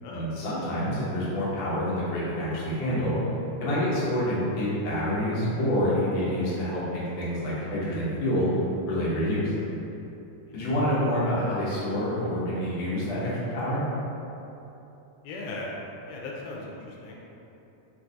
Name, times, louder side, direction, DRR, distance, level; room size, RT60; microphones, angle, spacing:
voice 1, 0.1-3.2 3.6-8.5 8.9-9.5 10.5-13.8, equal, 70° left, -8 dB, 1.2 m, -27 dB
voice 2, 15.2-15.7 16.1-17.2, left 2 dB, 85° left, -2 dB, 2.1 m, -38 dB
4.5 x 3.9 x 2.7 m, 2.9 s
omnidirectional pair, 3.6 m